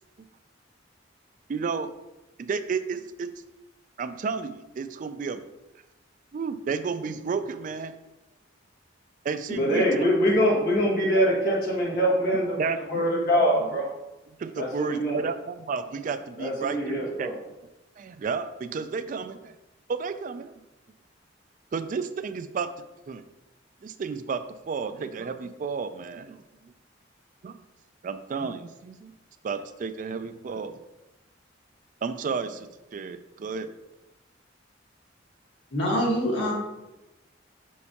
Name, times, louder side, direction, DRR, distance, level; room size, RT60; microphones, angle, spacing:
voice 1, 1.5-1.9 2.4-3.3 4.0-5.4 6.3-7.9 9.2-10.1 12.6-13.5 14.4-17.3 18.0-19.5 19.9-20.5 21.7-22.7 23.1-23.2 23.8-24.4 24.7-26.4 27.4-27.6 28.0-29.1 29.4-30.8 32.0-33.7, right 5 dB, 45° right, 11 dB, 0.3 m, -32 dB
voice 2, 9.5-12.5 12.9-13.9 14.6-15.2 16.4-17.3, equal, 50° left, -4 dB, 1.7 m, -23 dB
voice 3, 35.7-36.5, equal, 80° left, -1 dB, 1.5 m, -25 dB
6.4 x 5.5 x 2.8 m, 0.98 s
head